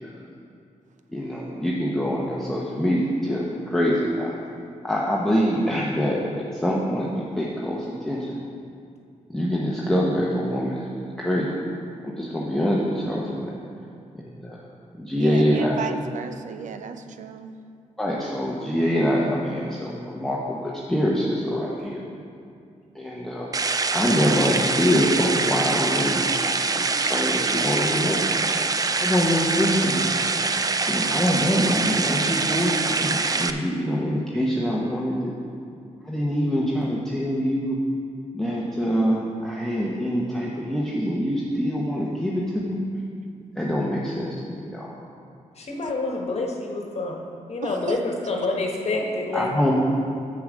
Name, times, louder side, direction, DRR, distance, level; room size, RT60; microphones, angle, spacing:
voice 1, 1.1-4.3 4.8-7.1 7.4-7.8 8.1-8.3 9.3-10.8 11.2-11.5 12.2-13.4 15.0-15.8 18.0-22.0 23.0-23.5 23.9-26.2 26.7-28.2 29.0-30.1 30.9-35.2 36.1-37.8 38.3-42.8 43.6-44.9 49.0-49.1 49.3-49.9, equal, 5° left, -5 dB, 1.0 m, -24 dB
voice 2, 15.2-17.5 47.6-48.0, right 6 dB, 70° right, 8 dB, 0.6 m, -34 dB
sound 1, 23.5-33.5, right 4 dB, 30° right, 0.4 m, -24 dB
voice 3, 45.6-47.2 47.5-49.5, left 2 dB, 55° left, 0 dB, 1.3 m, -27 dB
7.8 x 6.9 x 5.1 m, 2.4 s
cardioid pair, 90°, 13 cm